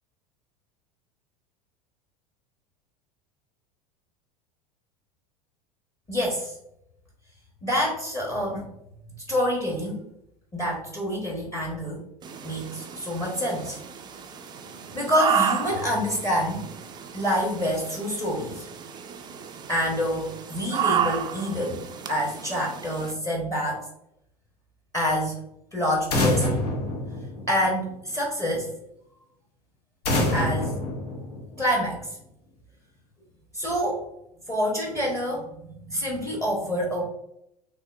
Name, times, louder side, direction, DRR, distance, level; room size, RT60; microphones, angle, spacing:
voice 1, 6.1-6.5 7.6-8.7 9.3-10.0 10.5-12.0 12.4-13.8 14.9-16.7 17.1-18.7 19.7-21.8 22.1-23.8 24.9-25.4 25.7-26.5 27.5-28.7 30.3-30.8 31.6-32.1 33.5-34.0 34.5-37.1, equal, 15° left, -2 dB, 0.8 m, -27 dB
sound 1, 12.2-23.1, right 8 dB, 20° right, 0.3 m, -32 dB
sound 2, 26.1-27.9 30.0-31.8, left 1 dB, 75° left, 0.8 m, -26 dB
3.6 x 2.8 x 2.3 m, 0.80 s
figure-of-eight pair, 80°, 20 cm